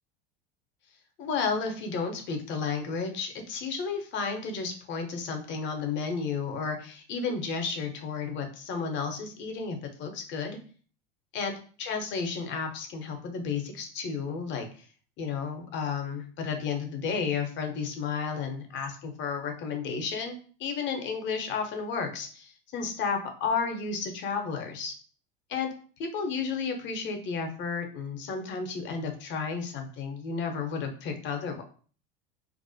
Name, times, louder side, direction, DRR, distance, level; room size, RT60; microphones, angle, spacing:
voice 1, 1.2-10.6 11.3-11.5 11.8-14.7 15.2-24.9 25.5-25.7 26.0-31.6, left 5 dB, 40° left, 5 dB, 0.7 m, -32 dB
2.5 x 2.1 x 2.6 m, 0.42 s
hypercardioid pair, 75°, 29 cm